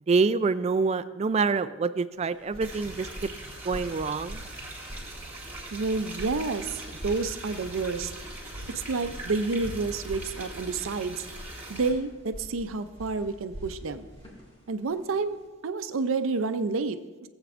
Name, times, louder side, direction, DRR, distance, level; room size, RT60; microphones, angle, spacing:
voice 1, 0.1-3.1 3.6-4.4, right 4 dB, 35° right, 13 dB, 0.3 m, -26 dB
sound 1, 2.2-15.4, equal, 30° left, 2.0 m, -44 dB
sound 2, 2.6-11.9, right 1 dB, 10° right, 2.9 m, -41 dB
voice 2, 5.7-8.1 8.7-11.2 11.7-14.1 14.7-17.3, right 4 dB, 85° right, 10 dB, 0.5 m, -29 dB
17.5 x 8.0 x 2.5 m, 1.3 s
head